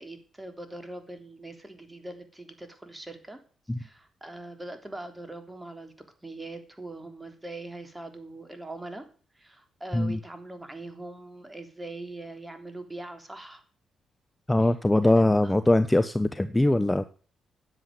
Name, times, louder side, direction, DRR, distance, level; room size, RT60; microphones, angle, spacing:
voice 1, 0.0-3.4 3.8-5.9 6.2-9.0 9.3-13.6 14.6-14.8 15.0-15.5, right 2 dB, 15° right, 7 dB, 3.4 m, -42 dB
voice 2, 14.5-17.1, left 1 dB, 15° left, 12 dB, 0.9 m, -22 dB
10.0 x 7.9 x 9.4 m, 0.41 s
hypercardioid pair, 50°, 0 cm